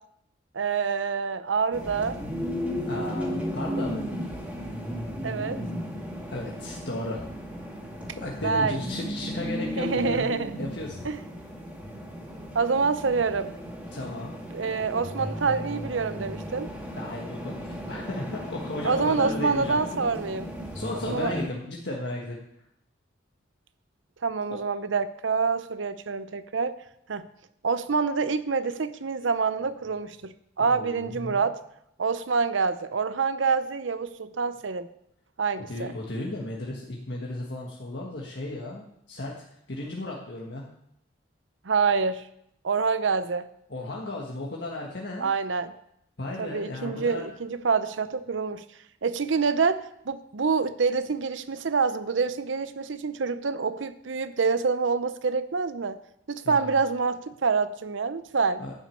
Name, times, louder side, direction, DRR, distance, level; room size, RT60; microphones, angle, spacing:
voice 1, 0.5-2.2 5.2-5.6 8.4-8.8 9.8-10.5 11.0-11.2 12.5-13.5 14.5-16.7 18.8-20.5 21.0-21.3 24.2-26.7 27.1-27.3 27.6-31.6 32.0-34.9 35.4-35.9 41.6-42.2 42.6-43.5 45.2-45.7 46.4-48.6 49.0-56.0 56.3-58.6, right 5 dB, 80° right, 13 dB, 0.7 m, -26 dB
sound 1, 1.7-21.5, equal, 5° right, 2.2 m, -35 dB
voice 2, 2.9-4.2 6.2-7.2 8.2-10.3 10.6-11.1 13.9-14.3 16.9-19.8 20.7-22.4 24.5-24.6 30.7-31.4 35.7-39.3 39.7-40.6 43.7-45.3 46.2-47.3 56.4-56.8 58.6-58.7, left 2 dB, 60° left, -2 dB, 1.5 m, -35 dB
11.0 x 6.2 x 8.4 m, 0.76 s
head